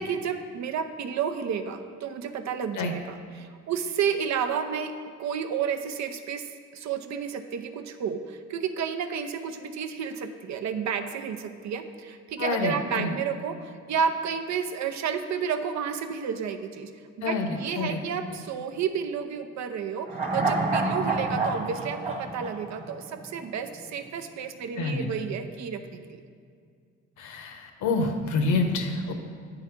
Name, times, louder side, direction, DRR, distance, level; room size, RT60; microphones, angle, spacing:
voice 1, 0.0-4.9 5.2-16.9 17.3-26.2, right 7 dB, 65° right, 8 dB, 0.6 m, -31 dB
voice 2, 12.4-13.1 17.2-18.0 18.3-18.4 24.8-25.1 27.2-29.1, left 3 dB, 75° left, 5 dB, 0.9 m, -28 dB
sound 1, 20.1-23.5 23.8-23.9, right 2 dB, 20° right, 1.4 m, -28 dB
8.3 x 3.9 x 5.8 m, 2.3 s
cardioid pair, 90°, 30 cm